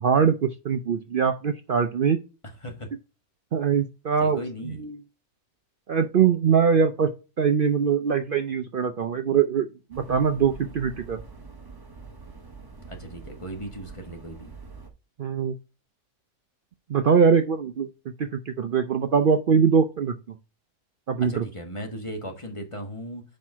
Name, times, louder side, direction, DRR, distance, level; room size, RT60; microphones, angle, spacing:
voice 1, 0.0-2.2 3.5-4.4 4.8-4.9 5.9-7.1 7.4-11.2 15.2-15.5 16.9-17.9 18.2-20.1 21.1-21.4, right 6 dB, 75° right, 8 dB, 0.5 m, -22 dB
voice 2, 2.4-2.9 4.2-4.9 12.9-14.5 21.2-23.2, equal, 20° left, 3 dB, 1.2 m, -37 dB
sound 1, 9.9-14.9, right 4 dB, 20° right, 0.7 m, -44 dB
5.3 x 4.4 x 5.9 m, 0.31 s
omnidirectional pair, 1.6 m